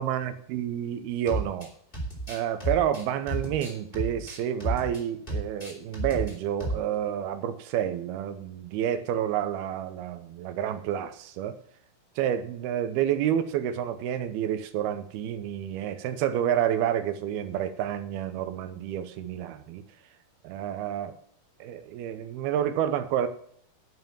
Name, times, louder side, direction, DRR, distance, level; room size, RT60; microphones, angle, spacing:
voice 1, 0.0-1.7 2.3-11.6 12.2-19.8 20.4-21.2 21.6-23.3, right 10 dB, 85° right, 10 dB, 2.8 m, -29 dB
sound 1, 1.3-1.7 1.9-5.0 5.3-6.3 6.6-6.9, right 2 dB, 15° left, 2.5 m, -32 dB
11.5 x 5.7 x 7.2 m, 0.64 s
omnidirectional pair, 4.4 m